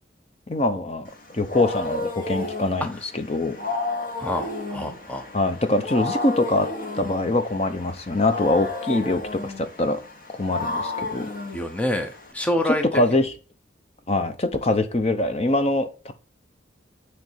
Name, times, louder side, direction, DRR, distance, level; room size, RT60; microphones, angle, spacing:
voice 1, 0.5-3.6 5.3-6.7 7.0-10.0 10.4-11.3 12.6-13.3 14.1-16.1, left 2 dB, 35° left, 0.8 m, -23 dB
Wild animals, 1.1-12.3, left 3 dB, 50° left, 1.6 m, -32 dB
voice 2, 4.2-5.3 11.5-12.8, left 1 dB, 10° left, 0.7 m, -27 dB
9.1 x 3.3 x 5.7 m
head